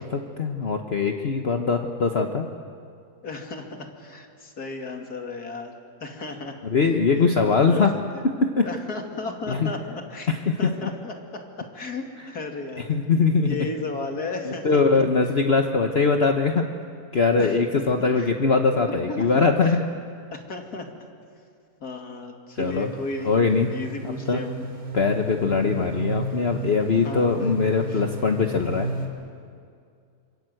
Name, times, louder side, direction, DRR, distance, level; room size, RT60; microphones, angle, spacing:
voice 1, 0.0-2.5 6.6-8.0 8.2-8.7 9.5-9.7 10.3-10.7 12.9-13.7 14.4-16.7 17.1-19.8 22.6-22.9 23.2-23.7 24.0-24.4 24.9-28.9, left 4 dB, 45° left, 4 dB, 1.3 m, -22 dB
voice 2, 3.2-5.7 6.0-6.6 7.1-7.8 8.1-8.2 8.6-10.3 10.6-12.9 13.4-15.0 17.3-17.8 18.2-18.3 19.1-19.8 20.3-20.9 21.8-23.4 23.7-24.7 27.0-27.5 27.9-28.0, left 3 dB, 90° left, 3 dB, 3.0 m, -34 dB
sound 1, 22.6-29.1, right 2 dB, 35° right, 3.8 m, -34 dB
26.5 x 24.0 x 7.9 m, 2.3 s
omnidirectional pair, 1.6 m